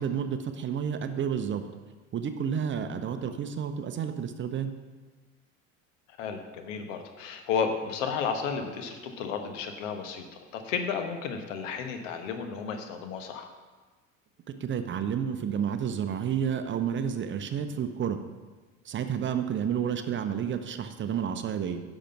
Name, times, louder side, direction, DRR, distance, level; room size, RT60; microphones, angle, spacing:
voice 1, 0.0-1.6 2.1-4.7 14.6-18.2 18.8-21.8, right 8 dB, 30° right, 9 dB, 0.8 m, -30 dB
voice 2, 6.2-10.2 10.5-13.5, left 6 dB, 65° left, 6 dB, 1.3 m, -32 dB
10.0 x 6.2 x 5.8 m, 1.3 s
hypercardioid pair, 75°, 39 cm